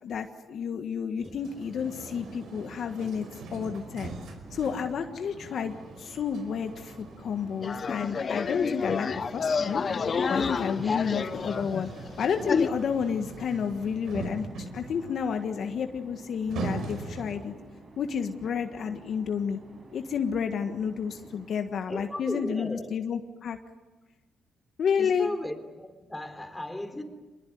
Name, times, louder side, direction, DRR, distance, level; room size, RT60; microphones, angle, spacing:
voice 1, 0.0-3.3 3.5-4.1 4.5-9.1 9.3-9.8 10.3-11.9 12.2-17.5 18.0-19.6 19.9-23.6 24.8-25.3, left 7 dB, 60° left, 1.5 m, -30 dB
voice 2, 1.2-1.5 5.4-5.5 8.8-9.3 10.8-11.0 21.9-22.9 25.0-27.0, left 1 dB, 10° left, 3.6 m, -37 dB
sound 1, 1.2-17.6, right 3 dB, 70° right, 5.3 m, -42 dB
sound 2, 2.0-21.6, right 2 dB, 45° right, 6.4 m, -52 dB
sound 3, 7.6-12.7, left 5 dB, 40° left, 1.2 m, -29 dB
25.5 x 21.0 x 9.4 m
cardioid pair, 90°, 0 cm